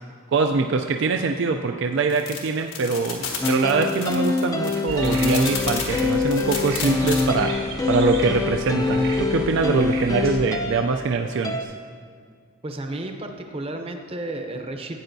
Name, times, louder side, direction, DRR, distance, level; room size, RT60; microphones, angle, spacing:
voice 1, 0.3-11.7, right 4 dB, 55° right, 4 dB, 0.4 m, -23 dB
sound 1, 2.1-7.2, left 6 dB, 75° left, 1.5 m, -31 dB
sound 2, 3.4-11.6, left 3 dB, 15° left, 0.4 m, -25 dB
sound 3, 4.9-10.4, right 1 dB, 80° right, 1.4 m, -34 dB
voice 2, 12.6-15.0, right 2 dB, 25° right, 5 dB, 0.7 m, -32 dB
13.0 x 8.8 x 2.7 m, 2.2 s
head